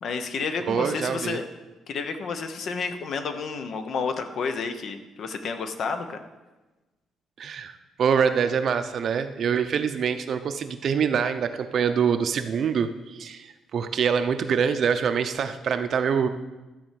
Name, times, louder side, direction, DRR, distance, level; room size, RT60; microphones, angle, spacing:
voice 1, 0.0-1.5 1.9-6.2, left 5 dB, 55° left, 8 dB, 0.9 m, -30 dB
voice 2, 0.7-1.4 7.4-16.3, right 7 dB, 55° right, 9 dB, 0.7 m, -25 dB
13.0 x 4.4 x 7.6 m, 1.1 s
cardioid pair, 125°, 0 cm